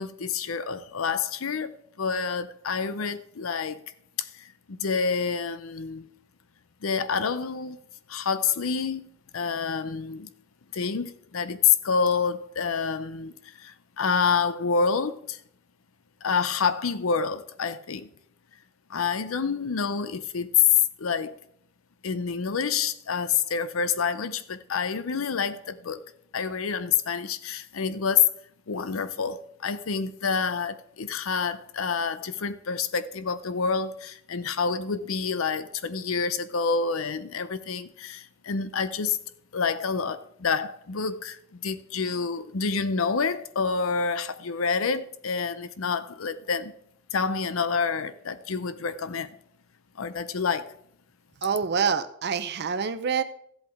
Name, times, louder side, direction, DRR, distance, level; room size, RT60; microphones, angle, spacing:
voice 1, 0.0-3.8 4.2-6.1 6.8-7.8 8.1-9.1 9.3-10.3 10.7-15.4 16.2-18.1 18.9-21.4 22.0-28.3 28.7-39.2 39.5-46.7 47.1-49.3 49.9-50.7, left 6 dB, 90° left, 0.7 m, -27 dB
voice 2, 51.4-53.2, right 6 dB, 55° right, 0.7 m, -26 dB
14.0 x 8.0 x 3.5 m
head